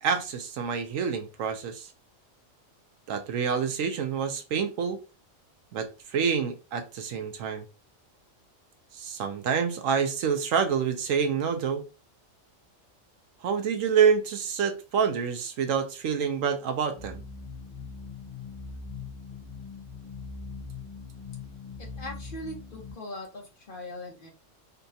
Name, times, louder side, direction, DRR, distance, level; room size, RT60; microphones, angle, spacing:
voice 1, 0.0-1.9 3.1-5.0 5.7-7.6 8.9-11.8 13.4-17.2, right 6 dB, 85° right, 1.0 m, -27 dB
sound 1, 16.9-22.9, left 4 dB, 20° left, 1.0 m, -41 dB
voice 2, 21.8-24.3, left 1 dB, 45° left, 0.9 m, -40 dB
4.1 x 2.2 x 2.6 m
omnidirectional pair, 1.3 m